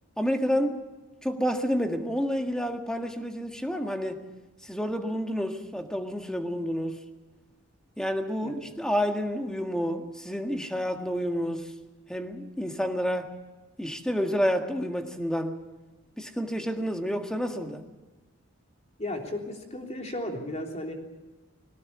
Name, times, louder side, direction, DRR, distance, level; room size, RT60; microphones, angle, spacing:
voice 1, 0.2-0.8 1.2-4.2 4.6-7.0 8.0-11.7 12.1-13.3 13.8-15.6 16.2-17.8, equal, 5° left, 5 dB, 1.8 m, -29 dB
voice 2, 19.0-20.9, left 1 dB, 35° left, 2 dB, 3.4 m, -34 dB
21.5 x 18.0 x 8.4 m, 1.2 s
head